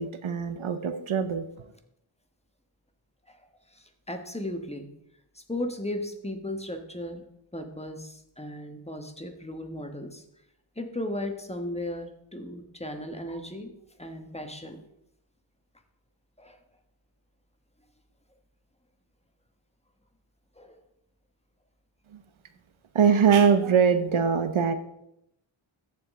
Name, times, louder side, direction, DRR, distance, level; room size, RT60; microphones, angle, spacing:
voice 1, 0.0-1.4 22.1-22.2 22.9-24.7, right 6 dB, 80° right, 10 dB, 0.8 m, -22 dB
voice 2, 3.7-4.9 5.3-7.2 7.5-10.2 10.8-13.7 14.0-14.8 16.4-16.6 20.6-20.8, left 1 dB, 15° left, 5 dB, 1.2 m, -36 dB
14.0 x 5.2 x 3.6 m, 0.78 s
wide cardioid pair, 70°, 48 cm